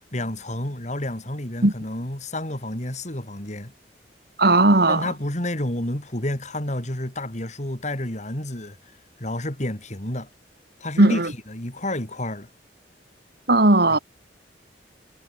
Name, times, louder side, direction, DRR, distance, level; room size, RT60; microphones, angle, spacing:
voice 1, 0.1-3.7 4.9-8.8 9.2-10.3 10.8-12.5, left 1 dB, 40° left, 4.2 m, -30 dB
voice 2, 4.4-5.1 11.0-11.3 13.5-14.0, right 2 dB, 55° right, 2.6 m, -16 dB
head